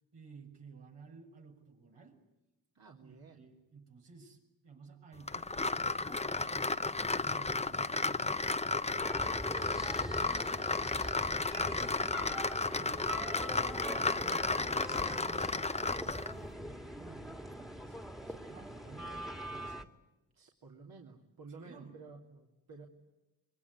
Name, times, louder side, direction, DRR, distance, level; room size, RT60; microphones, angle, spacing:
voice 1, 0.1-2.2 3.0-6.8 7.1-8.5 8.8-12.3 12.8-19.8 21.6-22.0, right 4 dB, 80° right, 1 dB, 6.8 m, -55 dB
voice 2, 2.7-3.4 20.3-22.9, right 4 dB, 55° right, 0 dB, 3.1 m, -52 dB
sound 1, 5.3-16.4, left 3 dB, 15° left, 0.9 m, -33 dB
sound 2, 9.0-19.8, equal, ahead, 2.0 m, -43 dB
25.5 x 22.5 x 9.7 m, 1.0 s
cardioid pair, 65°, 41 cm